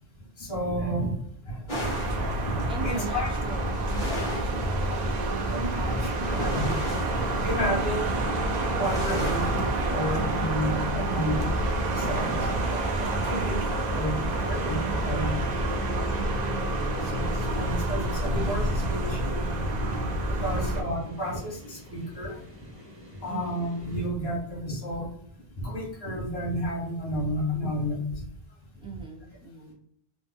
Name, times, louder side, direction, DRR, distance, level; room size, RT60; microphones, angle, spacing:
voice 1, 0.4-1.1 1.4-3.3 4.7-4.9 5.5-6.7 7.0-8.2 8.7-11.5 11.9-12.8 13.1-15.4 15.9-16.1 17.0-19.7 20.3-22.4 23.2-25.1 25.6-28.0, equal, 75° left, -2 dB, 1.4 m, -31 dB
sound 1, 1.7-10.3, right 1 dB, 50° left, 1.4 m, -34 dB
sound 2, 1.8-20.8, right 2 dB, 50° right, 0.6 m, -28 dB
voice 2, 2.7-5.4 5.8-6.6 13.3-13.8 16.1-17.3 20.5-21.1 23.3-23.7 28.8-29.7, right 3 dB, 10° right, -1 dB, 0.4 m, -42 dB
sound 3, 6.5-24.1, left 1 dB, 35° right, 0.9 m, -49 dB
3.2 x 2.0 x 3.4 m, 0.68 s
omnidirectional pair, 1.0 m